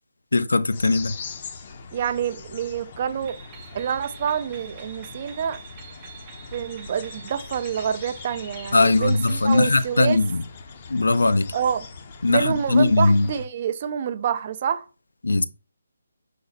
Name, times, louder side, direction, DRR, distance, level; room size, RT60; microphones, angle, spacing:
voice 1, 0.3-1.1 8.7-10.4 10.9-11.5 12.2-13.3 15.2-15.4, left 3 dB, 85° left, 0.4 m, -20 dB
sound 1, 0.7-13.5, left 5 dB, 35° left, 0.6 m, -41 dB
voice 2, 1.9-3.4 3.7-5.6 6.5-10.2 11.5-11.9 12.3-14.9, right 8 dB, 35° right, 0.4 m, -27 dB
sound 2, 3.2-9.9, right 7 dB, 20° right, 0.7 m, -46 dB
5.0 x 2.1 x 4.0 m
figure-of-eight pair, 160°, 0 cm